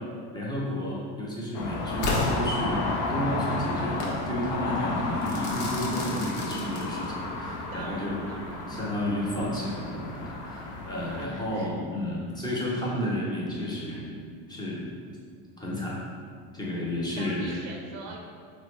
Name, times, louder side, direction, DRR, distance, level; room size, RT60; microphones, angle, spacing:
voice 1, 0.3-2.8 3.1-4.0 4.3-8.2 8.7-14.1 14.5-14.9 15.6-16.0 16.5-17.4, left 1 dB, 10° left, -6 dB, 0.5 m, -32 dB
sound 1, 1.5-11.3, left 2 dB, 55° left, 0.6 m, -32 dB
Crackle / Fireworks, 2.0-3.2 4.0-4.2 5.2-7.2, left 2 dB, 90° left, 0.8 m, -32 dB
voice 2, 7.7-8.7 11.2-11.7 17.2-18.2, right 3 dB, 50° right, 1 dB, 0.5 m, -43 dB
3.7 x 2.1 x 3.1 m, 2.1 s
supercardioid pair, 125°, 46 cm